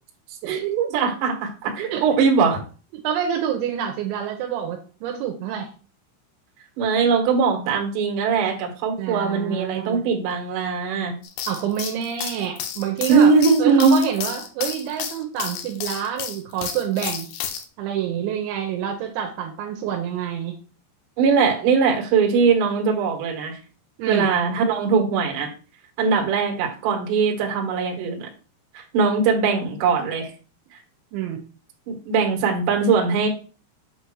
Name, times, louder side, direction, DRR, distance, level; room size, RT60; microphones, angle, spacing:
voice 1, 0.5-2.6 6.8-11.1 13.1-14.0 21.2-23.6 24.1-25.5 26.0-28.3 28.7-30.3 30.7-30.8 31.9-33.3, right 5 dB, 60° right, 1 dB, 2.3 m, -20 dB
voice 2, 2.9-5.7 9.0-10.0 11.5-13.3 13.6-17.3 17.8-20.6 24.0-24.3 31.1-31.4, right 9 dB, 80° right, 4 dB, 2.9 m, -27 dB
sound 1, 11.2-17.6, left 8 dB, 90° left, 2.3 m, -31 dB
8.2 x 2.8 x 6.2 m, 0.37 s
omnidirectional pair, 5.8 m